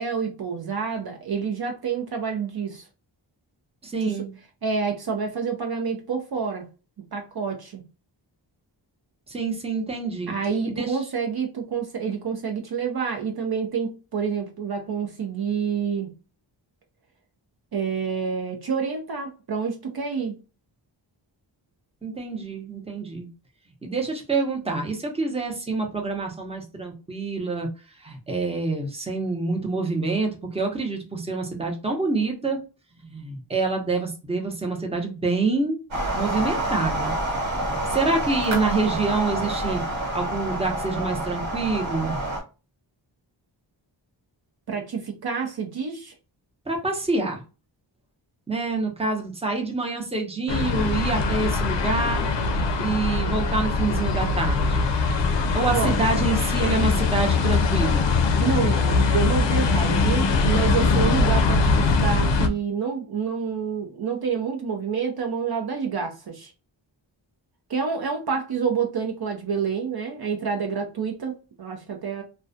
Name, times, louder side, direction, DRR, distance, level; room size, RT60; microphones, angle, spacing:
voice 1, 0.0-2.8 4.0-4.2 4.6-6.7 7.1-7.8 10.3-16.1 17.7-20.4 44.7-46.1 55.7-56.0 58.4-66.5 67.7-72.2, right 6 dB, 55° right, 0.6 m, -28 dB
voice 2, 3.8-4.3 9.3-10.3 10.7-11.0 22.0-23.3 23.8-27.7 28.0-32.6 33.0-35.8 36.1-37.1 37.7-42.2 46.7-47.4 48.5-52.3 52.8-54.9 55.5-58.1, right 3 dB, 15° right, 0.7 m, -27 dB
sound 1, 35.9-42.4, right 1 dB, 85° right, 1.0 m, -28 dB
sound 2, 50.5-62.5, left 4 dB, 65° left, 0.5 m, -22 dB
2.3 x 2.2 x 2.5 m
cardioid pair, 60°, 47 cm